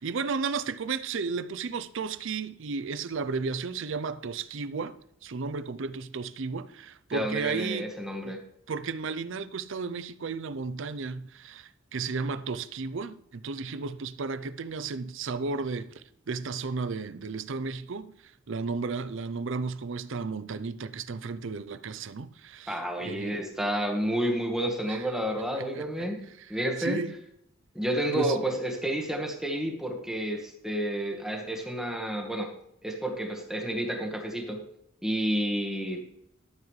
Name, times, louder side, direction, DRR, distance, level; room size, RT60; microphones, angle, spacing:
voice 1, 0.0-5.0 5.2-7.9 8.2-8.4 8.7-23.4 24.9-25.1 25.5-27.1 28.1-28.4, right 4 dB, 65° right, 0.6 m, -34 dB
voice 2, 7.1-8.4 22.7-26.2 26.5-27.0 27.7-32.5 32.8-34.6 35.0-36.0, right 1 dB, 5° right, 1.5 m, -30 dB
12.5 x 7.2 x 3.2 m
head